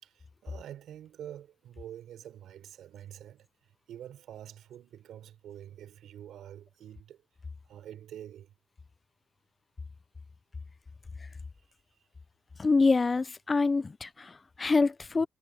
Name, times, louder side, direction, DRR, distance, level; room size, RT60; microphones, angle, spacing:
voice 1, 0.0-3.5 3.9-7.2 7.6-8.5, right 11 dB, 75° right, 4.3 m, -47 dB
voice 2, 12.6-15.3, left 3 dB, 30° left, 0.4 m, -26 dB
cardioid pair, 90°, 0 cm